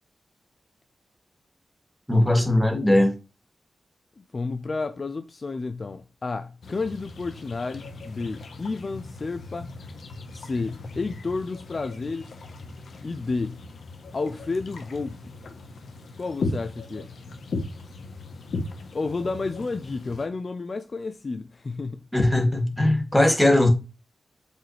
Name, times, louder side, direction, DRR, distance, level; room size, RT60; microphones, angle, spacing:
voice 1, 2.1-3.1 22.1-23.7, left 1 dB, 5° left, 2.3 m, -19 dB
voice 2, 4.2-9.7 10.3-12.3 13.0-13.6 14.1-15.2 16.2-17.1 18.9-22.0, left 3 dB, 50° left, 0.6 m, -31 dB
sound 1, 6.6-20.3, left 3 dB, 80° left, 1.3 m, -37 dB
7.5 x 5.4 x 3.4 m
cardioid pair, 70°, 0 cm